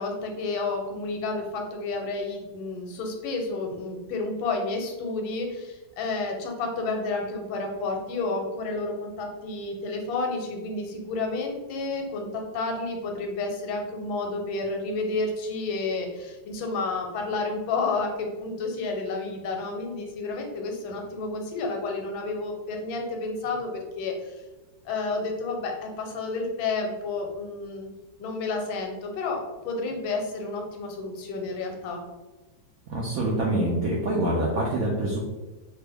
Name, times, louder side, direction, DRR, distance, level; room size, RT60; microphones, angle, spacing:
voice 1, 0.0-24.3 24.8-27.9 28.2-32.0, left 3 dB, 90° left, 2 dB, 1.4 m, -30 dB
voice 2, 32.9-35.3, right 1 dB, 80° right, -3 dB, 0.8 m, -25 dB
3.4 x 2.1 x 3.4 m, 1.2 s
omnidirectional pair, 2.1 m